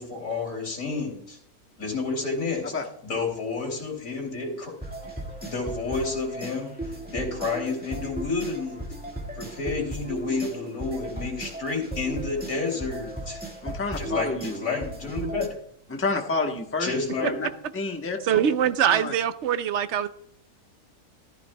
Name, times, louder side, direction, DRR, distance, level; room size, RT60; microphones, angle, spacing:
voice 1, 0.0-1.4 1.8-2.7 3.0-4.7 5.4-6.7 7.1-8.8 9.4-13.4 14.0-15.6 16.8-17.4, left 4 dB, 60° left, 1 dB, 3.3 m, -30 dB
sound 1, 4.8-15.5, right 1 dB, 5° right, 1.6 m, -36 dB
voice 2, 13.6-14.6 15.9-16.9 17.2-17.5 17.7-18.2 18.9-19.1, left 3 dB, 10° left, 3 dB, 0.9 m, -29 dB
voice 3, 18.2-20.1, right 9 dB, 65° right, 12 dB, 0.7 m, -23 dB
14.0 x 12.0 x 2.2 m, 0.69 s
omnidirectional pair, 1.6 m